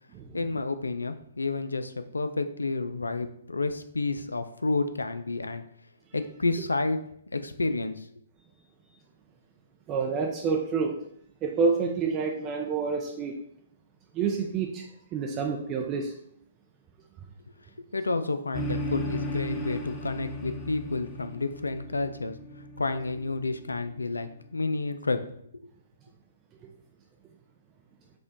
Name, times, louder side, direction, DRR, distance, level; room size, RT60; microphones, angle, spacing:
voice 1, 0.3-5.6 6.1-7.0 7.3-8.1 17.9-22.3 22.8-25.2, left 3 dB, 85° left, 10 dB, 0.4 m, -30 dB
voice 2, 9.9-11.0 11.4-13.4 14.1-14.8 15.1-16.1, right 5 dB, 25° right, 1 dB, 0.5 m, -28 dB
sound 1, 18.5-24.2, left 1 dB, 25° left, 0.6 m, -36 dB
4.9 x 2.3 x 3.9 m, 0.69 s
figure-of-eight pair, 125°, 0 cm